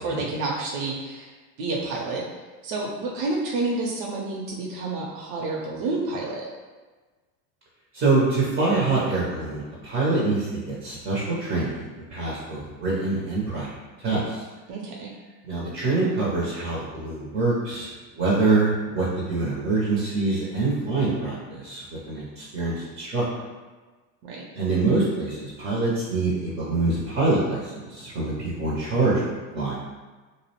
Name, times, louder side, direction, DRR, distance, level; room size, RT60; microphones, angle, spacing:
voice 1, 0.0-1.3 1.6-2.2 2.6-6.4 14.7-15.1 24.2-24.4, right 2 dB, 80° right, -3 dB, 0.7 m, -29 dB
voice 2, 7.9-13.7 14.0-14.4 15.4-17.9 18.1-23.2 24.5-29.7, right 3 dB, 25° right, -6 dB, 0.4 m, -25 dB
2.5 x 2.0 x 2.8 m, 1.3 s
supercardioid pair, 120°, 48 cm